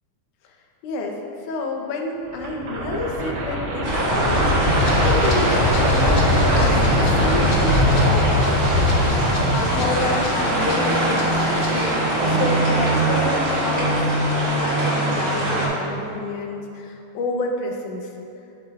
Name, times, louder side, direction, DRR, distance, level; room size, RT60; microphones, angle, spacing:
voice 1, 0.8-1.2 1.4-8.2 9.5-11.4 11.7-14.0 14.5-18.1, left 2 dB, 80° left, 1 dB, 2.2 m, -29 dB
sound 1, 2.3-10.3, left 1 dB, 70° right, 2.6 m, -21 dB
sound 2, 3.8-15.7, right 1 dB, 30° right, 1.7 m, -22 dB
Rattle (instrument), 4.8-12.0, left 2 dB, 60° left, 1.5 m, -38 dB
10.0 x 8.3 x 2.3 m, 2.7 s
omnidirectional pair, 3.6 m